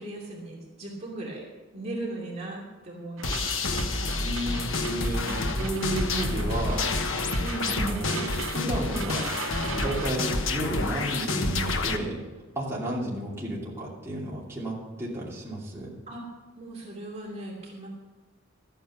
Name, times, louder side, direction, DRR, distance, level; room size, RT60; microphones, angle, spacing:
voice 1, 0.0-1.5 1.7-5.0 7.4-8.2 16.1-16.3 16.6-17.9, right 2 dB, 35° right, -3 dB, 2.6 m, -38 dB
sound 1, 3.2-12.0, left 3 dB, 80° left, 1.2 m, -29 dB
sound 2, 3.2-10.1, right 6 dB, 80° right, 0.7 m, -39 dB
voice 2, 4.2-6.9 7.7-9.3 9.8-12.2 12.5-15.9, right 1 dB, 15° right, -6 dB, 2.8 m, -32 dB
13.5 x 9.3 x 5.8 m, 1.2 s
head